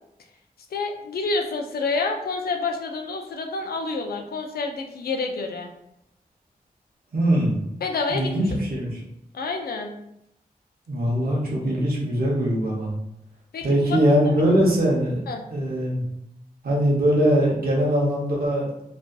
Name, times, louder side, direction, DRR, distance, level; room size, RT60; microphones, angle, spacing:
voice 1, 0.7-5.7 7.8-8.3 9.3-10.0 13.5-14.4 15.3-15.4, left 3 dB, 85° left, 3 dB, 0.4 m, -28 dB
voice 2, 7.1-7.6 8.1-9.0 10.9-12.9 13.6-15.2 15.5-16.0 16.6-18.7, equal, 80° right, -3 dB, 0.8 m, -21 dB
2.6 x 2.3 x 2.2 m, 0.82 s
wide cardioid pair, 65°, 15 cm